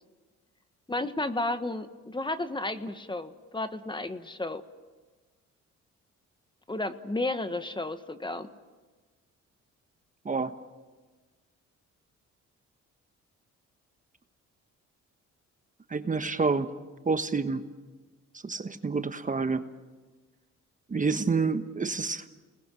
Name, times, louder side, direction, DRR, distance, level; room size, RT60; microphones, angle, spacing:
voice 1, 0.9-4.6 6.7-8.5, left 2 dB, 15° left, 10 dB, 1.4 m, -32 dB
voice 2, 15.9-16.7 17.1-17.6 18.4-19.6 20.9-22.2, right 4 dB, 25° right, 9 dB, 1.2 m, -28 dB
30.0 x 20.0 x 7.7 m, 1.3 s
cardioid pair, 90°, 30 cm